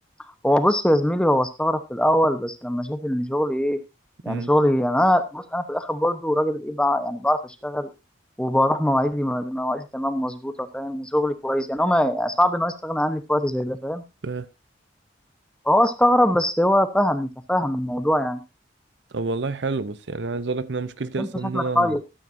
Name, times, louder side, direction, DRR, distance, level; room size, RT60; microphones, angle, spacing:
voice 1, 0.2-3.8 4.2-7.9 8.4-14.0 15.6-18.4 21.2-22.0, left 1 dB, 5° left, 0.9 m, -22 dB
voice 2, 19.1-22.0, right 3 dB, 75° right, 0.8 m, -28 dB
14.0 x 12.5 x 2.7 m
head